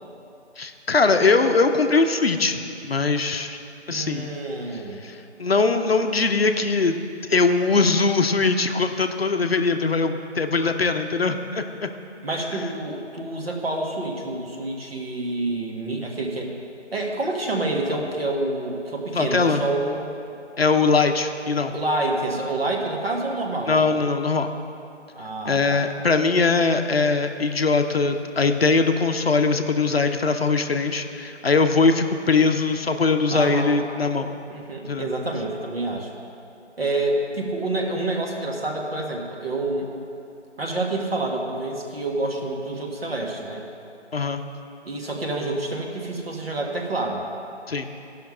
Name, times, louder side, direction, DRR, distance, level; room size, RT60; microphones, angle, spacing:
voice 1, 0.6-3.6 3.9-4.3 5.0-7.0 7.3-11.9 19.1-19.6 20.6-21.7 23.7-24.5 25.5-34.3 34.9-35.1 44.1-44.4 47.7-47.9, left 4 dB, 55° left, 7 dB, 0.7 m, -21 dB
voice 2, 3.9-5.0 12.2-16.5 16.9-20.1 21.7-23.8 25.2-25.8 33.3-33.8 34.5-36.1 36.8-39.9 40.6-43.6 44.8-47.2, right 2 dB, 55° right, 0 dB, 1.7 m, -28 dB
14.0 x 5.8 x 5.7 m, 2.6 s
figure-of-eight pair, 160°, 36 cm